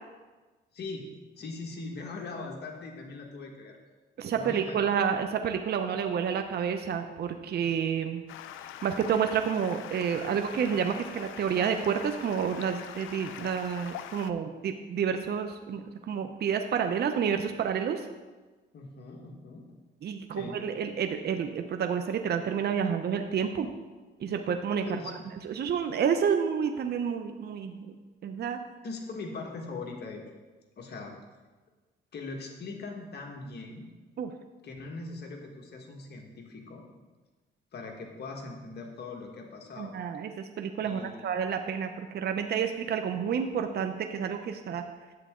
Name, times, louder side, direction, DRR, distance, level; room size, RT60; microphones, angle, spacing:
voice 1, 0.7-1.1 1.4-3.8 4.3-4.8 18.7-19.6 20.3-20.6 24.8-25.3 28.8-30.2 30.8-31.1 32.1-33.9 34.6-36.9 37.7-39.9 40.8-41.3, left 3 dB, 55° left, 1 dB, 1.6 m, -40 dB
voice 2, 4.2-8.2 8.8-15.8 16.1-18.1 20.0-23.7 24.2-24.9 25.4-27.9 28.2-28.6 34.2-34.3 39.8-44.8, right 7 dB, 55° right, 6 dB, 0.7 m, -29 dB
Stream, 8.3-14.3, left 11 dB, 85° left, 0.5 m, -43 dB
10.5 x 8.0 x 3.7 m, 1.3 s
cardioid pair, 90°, 20 cm